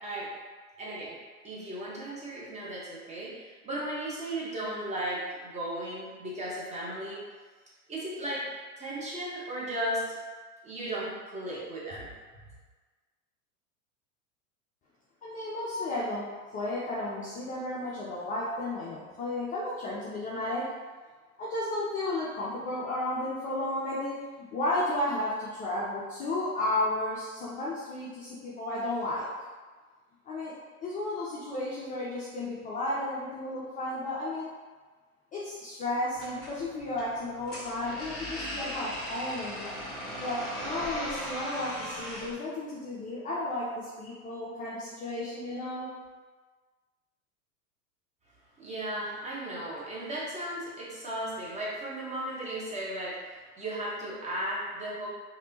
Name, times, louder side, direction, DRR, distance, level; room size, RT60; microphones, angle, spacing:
voice 1, 0.8-1.2 1.4-7.2 7.9-8.4 8.8-10.1 10.6-12.1 48.6-55.1, right 1 dB, 15° right, -6 dB, 1.0 m, -35 dB
voice 2, 15.2-16.2 16.5-20.6 21.4-29.3 30.3-30.5 30.8-34.5 35.3-39.7 40.2-45.9, left 1 dB, 20° left, -7 dB, 0.4 m, -33 dB
sound 1, 36.1-42.3, equal, ahead, 1.4 m, -38 dB
3.3 x 2.7 x 2.8 m, 1.4 s
hypercardioid pair, 95°, 44 cm